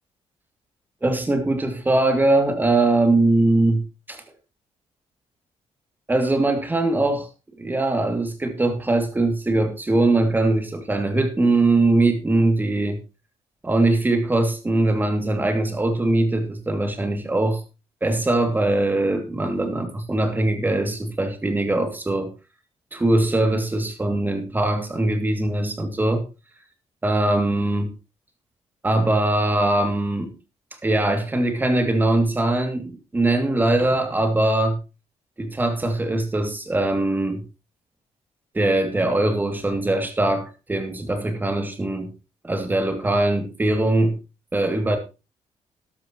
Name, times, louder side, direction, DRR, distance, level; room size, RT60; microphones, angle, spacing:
voice 1, 1.0-3.8 4.1-4.2 6.1-7.3 7.6-13.0 13.6-17.6 18.0-22.3 22.9-26.2 27.0-27.9 28.8-30.3 30.8-34.8 35.4-37.4 38.5-42.1 42.4-44.2 44.5-45.0, right 2 dB, 15° right, 6 dB, 2.7 m, -21 dB
13.0 x 12.5 x 3.1 m, 0.29 s
cardioid pair, 120°, 11 cm